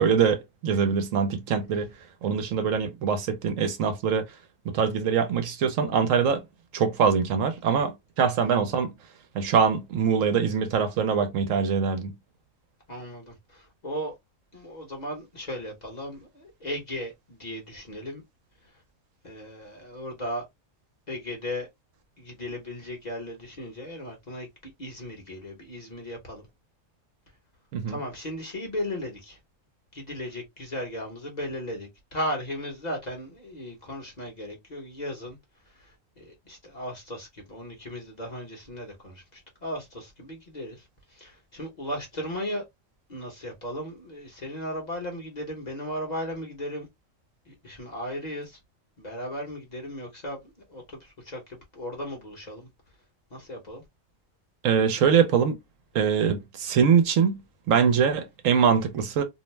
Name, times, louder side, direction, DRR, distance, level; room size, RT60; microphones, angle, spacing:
voice 1, 0.0-1.9 2.2-4.3 4.7-6.4 6.7-8.9 9.3-12.1 27.7-27.9 54.6-55.6 55.9-57.4 57.7-59.2, right 6 dB, 75° right, 1.0 m, -23 dB
voice 2, 12.9-14.2 14.5-18.2 18.6-18.8 19.2-20.4 21.1-21.7 22.2-26.5 27.9-29.4 29.9-35.4 35.6-42.6 43.1-46.9 47.4-48.6 49.0-52.7 53.3-53.8, equal, 35° left, 0.9 m, -36 dB
2.6 x 2.0 x 3.1 m
omnidirectional pair, 1.4 m